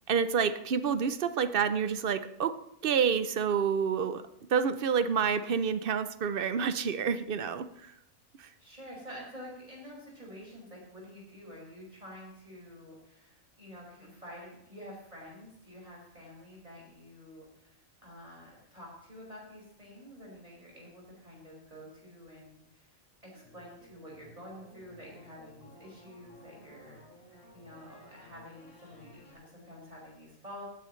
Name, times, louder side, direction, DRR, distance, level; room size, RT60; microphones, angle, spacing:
voice 1, 0.1-4.2 4.5-7.9 8.4-8.5, right 6 dB, 55° right, 12 dB, 0.7 m, -28 dB
voice 2, 8.6-22.9 23.2-30.6, equal, 25° right, -4 dB, 5.2 m, -49 dB
sound 1, 23.3-29.3, left 1 dB, 25° left, 4.1 m, -56 dB
18.5 x 9.9 x 3.2 m, 0.77 s
omnidirectional pair, 1.5 m